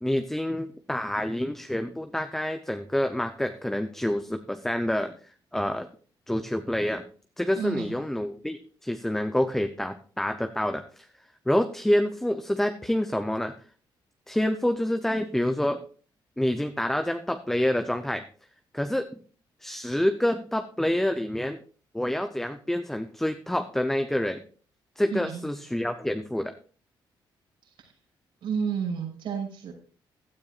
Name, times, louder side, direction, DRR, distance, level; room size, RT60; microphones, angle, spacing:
voice 1, 0.0-5.2 5.5-5.9 6.3-7.0 7.4-11.1 11.5-13.5 14.3-15.8 16.4-18.2 18.7-19.1 19.6-21.6 21.9-24.4 25.0-26.5, left 1 dB, 5° left, 7 dB, 0.7 m, -27 dB
voice 2, 7.5-7.9 25.1-25.4 27.6-27.9 28.4-29.7, right 6 dB, 80° right, 0 dB, 6.1 m, -31 dB
16.0 x 12.5 x 2.5 m, 0.41 s
cardioid pair, 140°, 9 cm